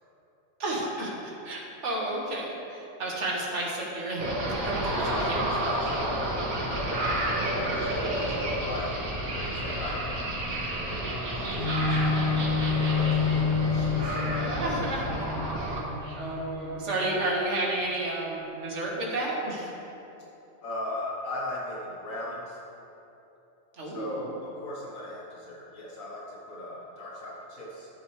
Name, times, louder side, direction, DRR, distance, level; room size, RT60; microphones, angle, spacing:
voice 1, 0.6-5.4 14.3-15.2 15.6-19.7 23.7-24.3, right 2 dB, 60° right, -3 dB, 1.8 m, -32 dB
sound 1, 4.2-15.8, right 1 dB, 85° right, 1.9 m, -30 dB
voice 2, 4.9-6.9 7.5-11.1 11.3-14.4 20.6-22.6 23.8-28.0, left 1 dB, 85° left, -5 dB, 1.8 m, -38 dB
Bowed string instrument, 11.5-17.2 17.8-17.9, left 5 dB, 45° left, 1.1 m, -29 dB
12.5 x 7.5 x 3.2 m, 2.9 s
omnidirectional pair, 1.4 m